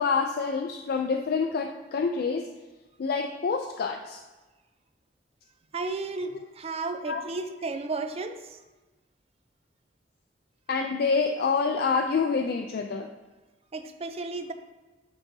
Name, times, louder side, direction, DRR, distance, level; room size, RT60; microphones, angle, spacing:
voice 1, 0.0-2.5 3.0-4.2 7.1-7.2 10.7-13.1, left 5 dB, 55° left, 4 dB, 0.3 m, -27 dB
voice 2, 5.7-8.6 13.7-14.5, right 3 dB, 35° right, 8 dB, 0.4 m, -33 dB
10.5 x 3.9 x 2.7 m, 1.2 s
head